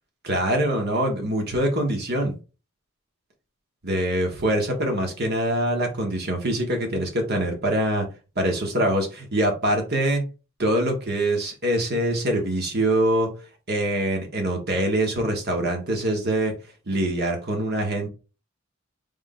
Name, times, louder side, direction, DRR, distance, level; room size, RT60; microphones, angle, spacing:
voice 1, 0.2-2.4 3.8-8.1 8.4-10.2 10.6-13.3 13.7-16.5 16.9-18.1, right 1 dB, 50° right, 3 dB, 1.4 m, -24 dB
3.7 x 3.2 x 3.7 m, 0.33 s
head